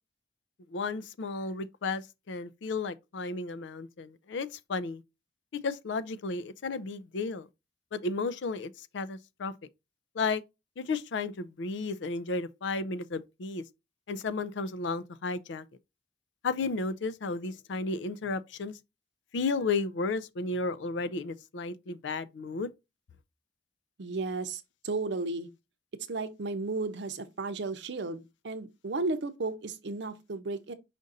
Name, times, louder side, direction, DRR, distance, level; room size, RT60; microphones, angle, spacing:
voice 1, 0.7-2.0 2.3-5.0 5.6-7.5 7.9-9.5 10.2-10.4 10.8-13.6 14.1-15.7 16.4-18.7 19.3-22.7, left 3 dB, 75° left, 0.4 m, -33 dB
voice 2, 24.0-25.5 26.1-30.7, right 3 dB, 70° right, 0.6 m, -34 dB
5.1 x 2.5 x 3.9 m
head